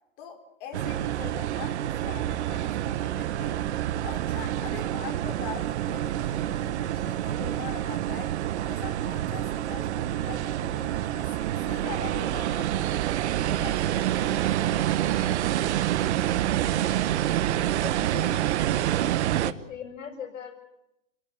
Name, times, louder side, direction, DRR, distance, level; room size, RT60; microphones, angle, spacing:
voice 1, 0.2-3.6 4.0-8.4 8.6-15.1, left 8 dB, 35° left, 4 dB, 4.5 m, -43 dB
sound 1, 0.7-19.5, right 12 dB, 60° right, 1.3 m, -27 dB
voice 2, 16.6-17.1 17.8-18.9 19.4-20.5, left 6 dB, 80° left, -2 dB, 6.8 m, -41 dB
28.5 x 18.0 x 8.7 m, 0.85 s
hypercardioid pair, 150°, 39 cm